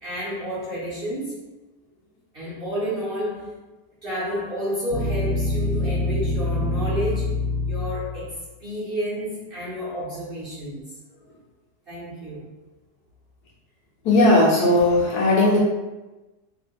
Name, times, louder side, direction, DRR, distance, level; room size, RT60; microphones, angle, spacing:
voice 1, 0.0-1.5 2.3-3.5 4.0-7.4 7.6-10.8 11.9-12.5, equal, 40° right, -8 dB, 1.0 m, -30 dB
sound 1, 4.9-8.3, left 2 dB, 55° left, 0.8 m, -25 dB
voice 2, 14.0-15.6, left 1 dB, 75° left, -5 dB, 1.6 m, -17 dB
4.7 x 2.5 x 2.3 m, 1.1 s
omnidirectional pair, 1.7 m